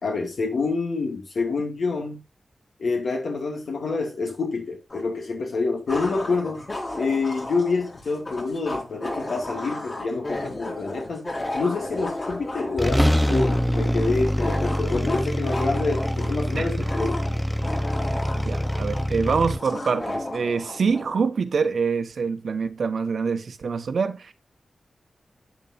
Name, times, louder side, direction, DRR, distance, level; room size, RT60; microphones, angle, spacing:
voice 1, 0.0-2.2 2.8-6.7 6.9-11.2 11.5-17.2, left 3 dB, 80° left, 2.3 m, -27 dB
sound 1, 4.9-5.0 5.9-21.3, left 1 dB, 35° left, 3.7 m, -33 dB
sound 2, 12.3-12.4 12.8-19.6, equal, ahead, 0.6 m, -25 dB
voice 2, 16.5-16.9 18.4-24.3, right 5 dB, 75° right, 1.2 m, -25 dB
10.5 x 9.4 x 2.7 m
wide cardioid pair, 115°, 0 cm